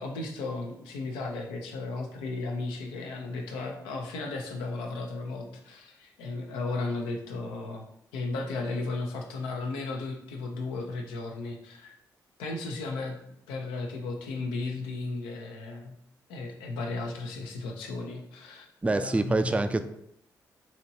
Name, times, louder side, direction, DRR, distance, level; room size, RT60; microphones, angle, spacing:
voice 1, 0.0-7.9 8.1-11.9 12.4-13.2 13.5-16.0 16.3-19.7, left 3 dB, 90° left, 2 dB, 0.5 m, -35 dB
voice 2, 18.8-19.8, right 2 dB, 15° right, 9 dB, 0.3 m, -26 dB
4.1 x 2.9 x 2.7 m, 0.75 s
hypercardioid pair, 45°, 8 cm